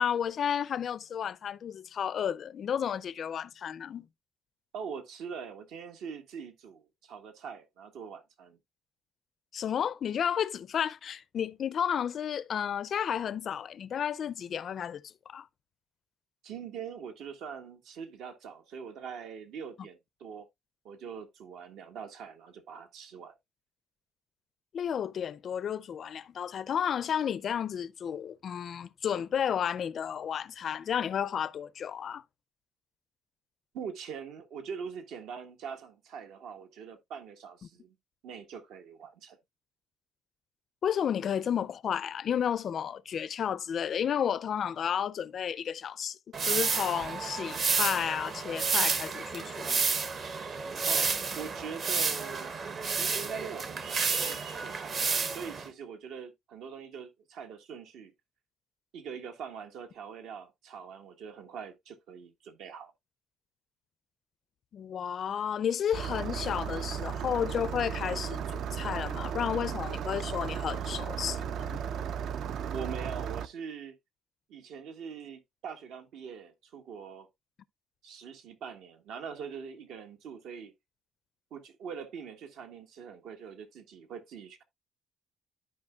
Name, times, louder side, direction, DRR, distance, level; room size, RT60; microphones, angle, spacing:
voice 1, 0.0-4.1 9.5-15.5 24.7-32.2 40.8-46.2 46.4-49.8 64.7-71.8, left 8 dB, 40° left, 0.4 m, -32 dB
voice 2, 4.7-8.6 16.4-20.5 20.8-23.3 33.7-37.9 38.2-39.4 50.9-52.5 53.0-54.9 55.3-58.1 58.9-62.9 72.7-73.9 74.5-77.3 78.0-80.7 81.5-84.6, right 6 dB, 75° right, 1.5 m, -43 dB
sound 1, 46.3-55.7, right 5 dB, 35° right, 0.8 m, -31 dB
Engine starting, 65.9-73.5, right 8 dB, 55° right, 0.4 m, -35 dB
13.0 x 4.9 x 2.3 m
cardioid pair, 165°, 0 cm